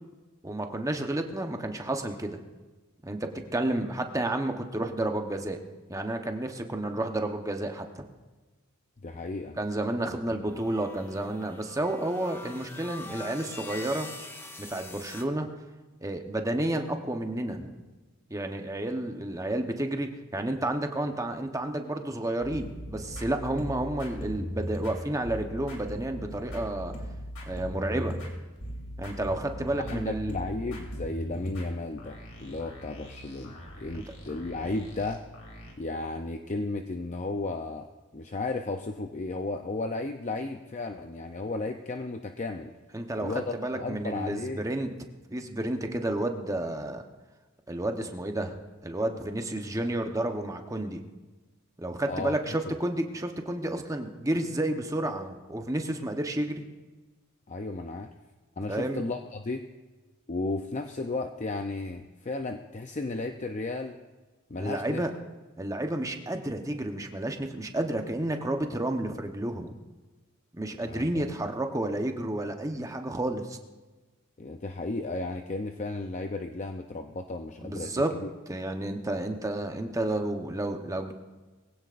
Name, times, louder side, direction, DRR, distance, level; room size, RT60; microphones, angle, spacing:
voice 1, 0.4-2.4 3.0-5.6 5.9-8.0 9.6-14.1 14.6-15.5 16.0-17.8 18.3-26.9 27.5-28.2 29.0-30.3 33.9-34.0 42.9-44.9 45.3-47.0 47.7-48.6 48.8-51.0 51.8-56.6 58.7-59.0 64.6-65.1 65.6-69.7 70.5-73.6 77.6-78.1 78.5-81.1, right 1 dB, 15° right, 4 dB, 0.9 m, -31 dB
voice 2, 9.0-9.6 29.8-35.2 35.8-42.7 43.2-44.6 52.1-52.3 57.5-58.1 58.6-59.7 60.3-64.0 64.5-65.0 70.8-71.3 74.4-78.3, left 2 dB, 35° left, 5 dB, 0.5 m, -34 dB
sound 1, 10.5-15.3, left 2 dB, 10° left, 0.8 m, -44 dB
sound 2, 22.4-35.7, equal, 85° left, 2.9 m, -39 dB
21.5 x 16.0 x 2.5 m, 1.3 s
head